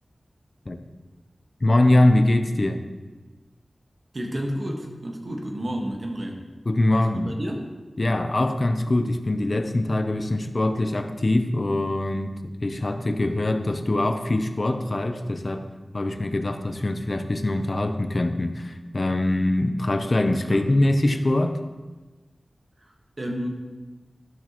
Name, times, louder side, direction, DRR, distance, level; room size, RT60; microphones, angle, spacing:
voice 1, 1.6-2.8 6.7-7.3 8.0-15.7 15.9-21.6, left 1 dB, 45° left, 7 dB, 0.7 m, -23 dB
voice 2, 4.1-6.4 6.9-7.7 20.4-20.7 22.8-23.5, equal, 55° right, 1 dB, 1.5 m, -31 dB
12.5 x 6.2 x 3.0 m, 1.3 s
wide cardioid pair, 60°, 0 cm